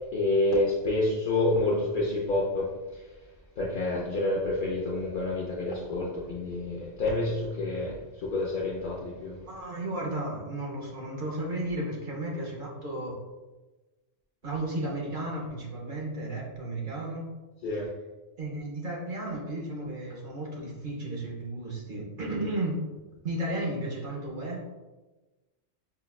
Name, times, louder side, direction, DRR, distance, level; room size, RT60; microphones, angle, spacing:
voice 1, 0.1-3.0 3.6-9.4 17.6-17.9, left 2 dB, 60° left, -4 dB, 0.5 m, -28 dB
voice 2, 9.4-13.2 14.4-17.3 18.4-22.8 23.2-24.6, right 1 dB, 50° right, -2 dB, 0.7 m, -34 dB
5.6 x 2.2 x 2.3 m, 1.2 s
omnidirectional pair, 1.3 m